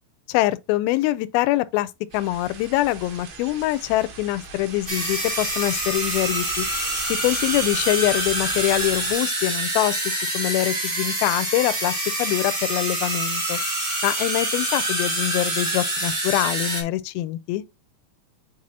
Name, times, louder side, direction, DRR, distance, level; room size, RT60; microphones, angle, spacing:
voice 1, 0.3-6.7 7.1-13.6 14.0-17.6, left 16 dB, 80° left, 2.4 m, -24 dB
sound 1, 2.1-9.2, right 4 dB, 80° right, 3.6 m, -40 dB
sound 2, 4.9-16.8, right 1 dB, 45° right, 0.6 m, -26 dB
7.5 x 4.5 x 2.8 m
omnidirectional pair, 4.5 m